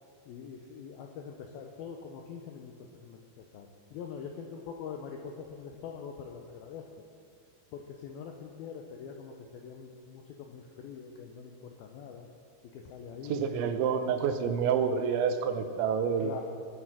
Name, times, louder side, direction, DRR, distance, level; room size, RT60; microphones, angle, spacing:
voice 1, 0.3-7.0 7.7-12.3 12.7-13.4 15.6-15.7 16.2-16.4, left 6 dB, 80° left, 2 dB, 2.1 m, -44 dB
voice 2, 13.3-16.3, right 7 dB, 80° right, 7 dB, 3.2 m, -28 dB
19.5 x 7.8 x 6.2 m, 2.2 s
omnidirectional pair, 5.4 m